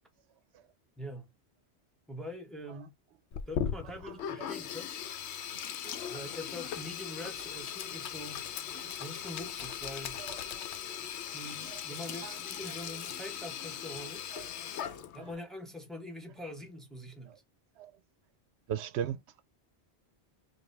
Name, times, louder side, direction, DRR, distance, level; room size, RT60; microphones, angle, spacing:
voice 1, 1.0-1.3 2.1-2.9 3.5-5.0 6.1-8.4 9.0-10.2 11.3-14.3 15.1-17.3, left 1 dB, ahead, 1.0 m, -44 dB
Sink (filling or washing), 3.3-15.3, left 9 dB, 85° left, 0.9 m, -39 dB
voice 2, 10.2-10.9 12.2-12.3 14.3-14.4 14.8-15.0 17.8-17.9 18.7-19.4, right 9 dB, 80° right, 0.8 m, -38 dB
5.0 x 2.3 x 3.2 m
omnidirectional pair, 1.1 m